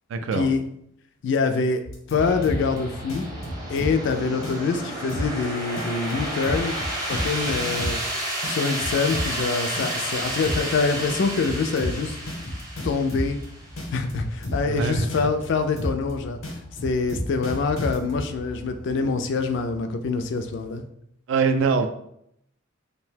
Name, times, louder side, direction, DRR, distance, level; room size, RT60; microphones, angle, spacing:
voice 1, 0.1-0.5 14.7-15.1 21.3-21.9, right 4 dB, 65° right, 7 dB, 0.3 m, -23 dB
voice 2, 1.2-3.3 3.7-6.8 7.1-8.0 8.4-12.2 12.8-13.4 13.9-16.4 16.8-20.8, left 4 dB, 60° left, 8 dB, 0.3 m, -25 dB
sound 1, 1.8-2.8 3.1-4.1 4.4-4.8 5.1-5.4 5.8-8.1 8.4-9.4 9.8-10.1 10.4-10.8 11.1-13.4 13.8-14.8 15.1-15.5 15.8-16.1 16.4-18.2, left 1 dB, 85° left, 0.8 m, -31 dB
sound 2, 2.2-20.8, right 1 dB, 20° right, 0.6 m, -33 dB
2.7 x 2.1 x 3.3 m, 0.73 s
head